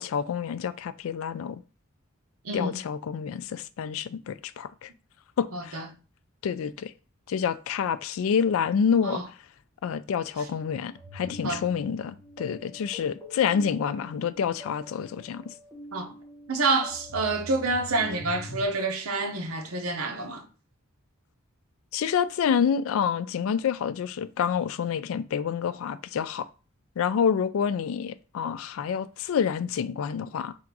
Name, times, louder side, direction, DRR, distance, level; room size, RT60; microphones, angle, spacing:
voice 1, 0.0-1.6 2.5-4.9 5.4-5.8 6.4-6.9 7.3-9.2 9.8-15.5 21.9-26.5 27.0-30.6, left 7 dB, 75° left, 0.3 m, -28 dB
voice 2, 2.4-2.8 5.5-5.8 9.0-9.2 11.4-11.6 15.9-16.1 16.5-20.5, right 3 dB, 85° right, 0.8 m, -28 dB
sound 1, 10.9-18.7, left 1 dB, 10° left, 1.3 m, -44 dB
3.6 x 2.5 x 4.6 m
head